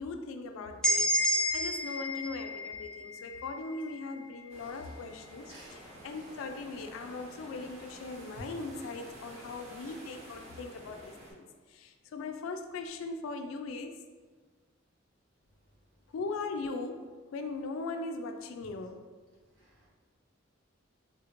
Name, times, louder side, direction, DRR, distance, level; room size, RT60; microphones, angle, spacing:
voice 1, 0.0-14.0 16.1-19.0, left 3 dB, 90° left, 7 dB, 0.3 m, -39 dB
sound 1, 0.8-4.6, equal, 5° left, 0.3 m, -31 dB
sound 2, 4.5-11.3, right 1 dB, 35° right, 0.7 m, -50 dB
voice 2, 19.6-19.9, right 1 dB, 75° right, -7 dB, 1.3 m, -55 dB
3.3 x 2.5 x 2.8 m, 1.4 s
head